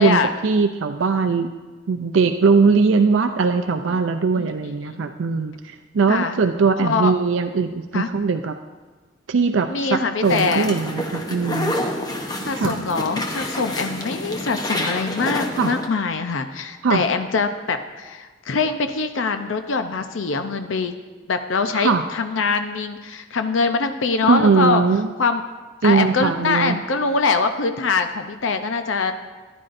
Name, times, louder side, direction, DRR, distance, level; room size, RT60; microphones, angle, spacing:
voice 1, 0.0-1.5 1.9-8.6 9.3-11.8 12.5-12.7 15.6-15.7 16.8-17.0 21.7-22.0 24.2-25.1 25.8-26.8, right 4 dB, 80° right, 6 dB, 0.5 m, -20 dB
voice 2, 6.8-7.1 7.9-8.1 9.7-10.7 12.4-20.9 21.3-24.8 25.2-25.4 25.8-29.1, left 4 dB, 90° left, 8 dB, 0.6 m, -23 dB
sound 1, 10.2-15.9, left 1 dB, 20° left, 0.9 m, -28 dB
14.0 x 11.0 x 2.6 m, 1.3 s
head